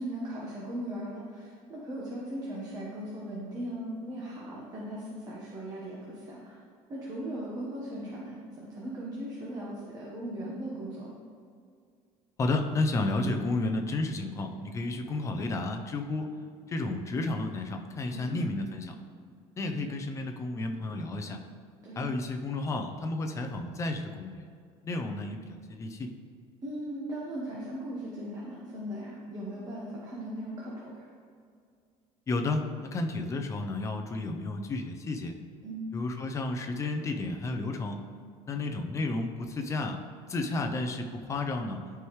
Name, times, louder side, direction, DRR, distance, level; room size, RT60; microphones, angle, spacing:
voice 1, 0.0-6.6 6.9-11.1 18.1-18.6 21.8-22.1 26.6-31.1 35.6-35.9, right 1 dB, 30° right, -5 dB, 1.2 m, -38 dB
voice 2, 12.4-16.3 16.7-18.9 19.6-21.4 22.0-24.5 24.8-26.1 32.3-35.3 35.9-38.0 38.4-40.0 40.3-41.8, left 2 dB, 20° left, 4 dB, 0.6 m, -32 dB
13.0 x 4.7 x 3.2 m, 2.2 s
cardioid pair, 150°, 13 cm